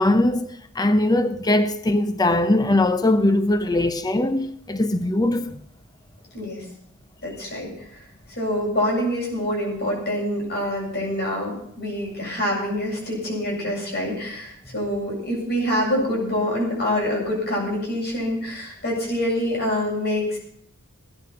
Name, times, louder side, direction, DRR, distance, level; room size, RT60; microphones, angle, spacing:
voice 1, 0.0-5.5, left 1 dB, 20° left, 0.7 m, -21 dB
voice 2, 6.3-6.6 7.2-7.7 8.3-20.4, left 1 dB, 50° left, 7.9 m, -26 dB
19.5 x 9.9 x 5.8 m
head